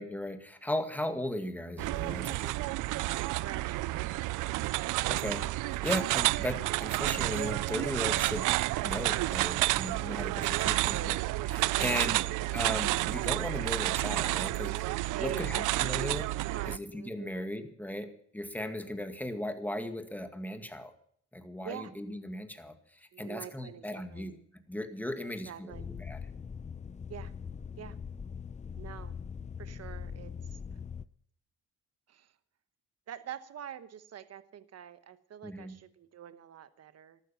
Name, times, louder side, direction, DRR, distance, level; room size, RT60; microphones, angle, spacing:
voice 1, 0.0-2.6 5.1-8.5 8.8-11.2 11.5-12.2 12.5-14.9 15.2-16.3 16.7-20.9 21.3-26.2 35.4-35.8, left 1 dB, 5° left, 7 dB, 2.0 m, -37 dB
sound 1, 1.8-16.8, right 18 dB, 85° right, 0.5 m, -30 dB
voice 2, 3.4-4.6 10.4-11.2 11.7-12.3 15.1-16.1 16.4-17.3 18.6-18.7 21.6-21.9 23.1-24.3 25.4-25.9 27.1-27.3 27.8-28.0 28.8-29.2 29.6-30.6 32.1-32.3 33.1-37.2, right 10 dB, 55° right, 12 dB, 1.2 m, -45 dB
sound 2, 25.7-31.0, left 6 dB, 25° left, 0.6 m, -42 dB
14.5 x 12.5 x 5.8 m, 0.64 s
cardioid pair, 90°, 30 cm